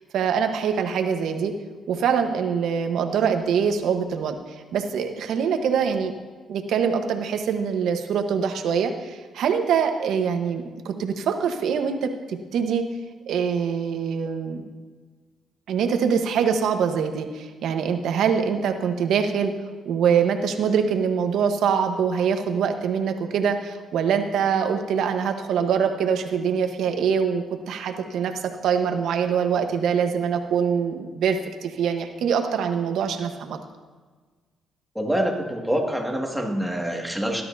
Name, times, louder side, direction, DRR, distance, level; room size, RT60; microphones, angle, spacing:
voice 1, 0.1-1.5 1.9-4.3 4.7-6.1 6.5-12.8 13.3-14.6 15.7-19.5 19.8-33.6, right 7 dB, 75° right, 6 dB, 1.2 m, -24 dB
voice 2, 34.9-37.4, right 1 dB, ahead, 0 dB, 2.1 m, -26 dB
18.0 x 12.0 x 2.8 m, 1.4 s
cardioid pair, 90°, 0 cm